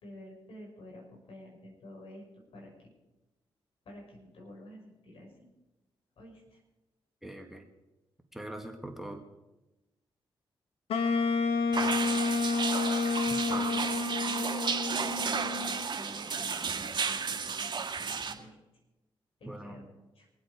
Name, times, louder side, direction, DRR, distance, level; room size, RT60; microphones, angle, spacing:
voice 1, 0.0-2.7 3.8-5.5 6.2-6.6 13.5-14.8 15.1-18.5 19.4-20.3, equal, 75° left, -1 dB, 5.9 m, -50 dB
voice 2, 7.2-7.7 8.3-9.2 13.3-13.7 19.5-19.8, right 1 dB, ahead, 3 dB, 2.0 m, -42 dB
Wind instrument woodwind instrument, 10.9-15.9, left 4 dB, 90° left, 1.0 m, -30 dB
sound 1, 11.7-18.3, right 5 dB, 50° right, 1.8 m, -33 dB
24.0 x 8.2 x 5.0 m, 1.0 s
cardioid pair, 60°, 10 cm